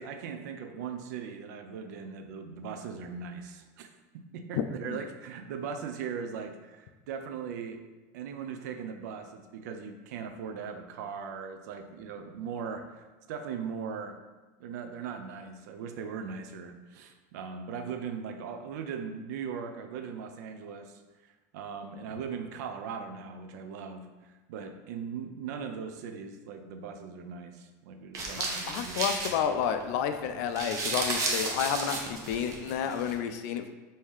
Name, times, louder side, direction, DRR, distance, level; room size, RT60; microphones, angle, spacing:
voice 1, 0.0-3.9 4.3-7.8 8.1-14.2 14.6-21.0 21.5-29.0, right 6 dB, 75° right, 7 dB, 0.4 m, -39 dB
voice 2, 4.5-5.0 28.7-33.7, left 8 dB, 65° left, 8 dB, 0.3 m, -30 dB
sound 1, 28.1-29.8 30.1-30.2 30.4-33.1, right 3 dB, 35° right, 0.7 m, -33 dB
3.1 x 2.7 x 3.5 m, 1.2 s
supercardioid pair, 135°, 9 cm